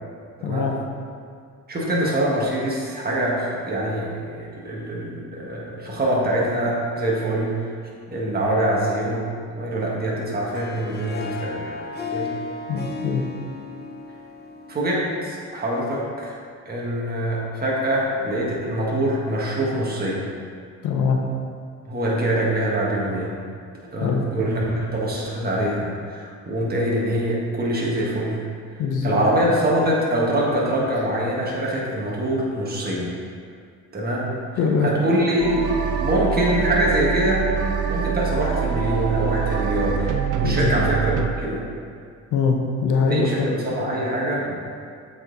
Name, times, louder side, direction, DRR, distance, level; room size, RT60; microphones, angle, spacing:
voice 1, 0.4-0.8 12.7-13.3 20.8-21.2 24.0-24.2 28.8-29.2 34.6-34.9 40.4-40.8 42.3-43.5, left 5 dB, 85° left, 1 dB, 0.8 m, -22 dB
voice 2, 1.7-7.7 8.1-11.8 12.1-12.3 14.7-16.3 16.6-20.3 21.8-23.3 23.9-28.4 29.0-33.1 33.9-34.3 34.8-37.5 37.9-40.1 40.4-41.6 43.1-44.5, right 1 dB, 30° right, -5 dB, 1.6 m, -24 dB
Harp, 10.3-15.6, left 4 dB, 35° left, 0.8 m, -34 dB
sound 1, 35.4-41.3, right 7 dB, 80° right, 0.6 m, -24 dB
7.8 x 4.2 x 4.0 m, 2.2 s
cardioid pair, 90°, 30 cm